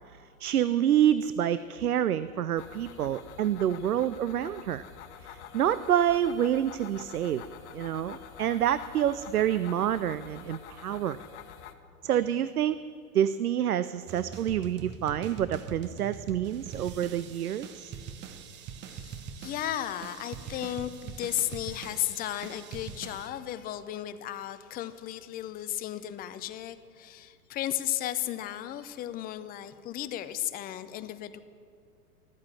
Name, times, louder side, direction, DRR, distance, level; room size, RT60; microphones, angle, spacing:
voice 1, 0.4-4.8 5.2-7.4 7.7-11.2 12.0-12.8 13.1-17.9, right 10 dB, 75° right, 15 dB, 0.6 m, -27 dB
sound 1, 2.6-11.7, left 9 dB, 50° left, 1.3 m, -47 dB
sound 2, 14.1-23.3, right 7 dB, 25° right, 0.8 m, -43 dB
voice 2, 18.9-31.4, left 12 dB, 20° left, 12 dB, 0.6 m, -35 dB
14.0 x 13.0 x 7.5 m, 2.5 s
figure-of-eight pair, 100°, 45 cm